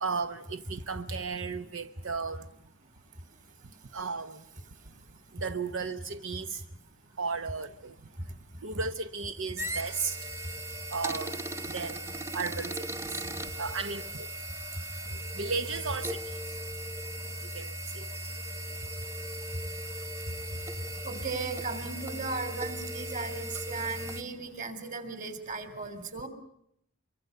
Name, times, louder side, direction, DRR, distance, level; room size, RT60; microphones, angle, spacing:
voice 1, 0.0-2.4 3.9-4.4 5.4-6.6 7.2-7.9 8.6-10.2 10.9-11.4 11.7-12.1 12.3-12.8 13.6-14.3 15.3-16.2 17.5-18.0, right 4 dB, 85° right, 0.9 m, -34 dB
sound 1, 9.6-24.2, right 1 dB, 15° right, 1.0 m, -37 dB
voice 2, 21.0-26.3, right 4 dB, 40° right, 3.5 m, -36 dB
24.5 x 24.5 x 6.7 m
head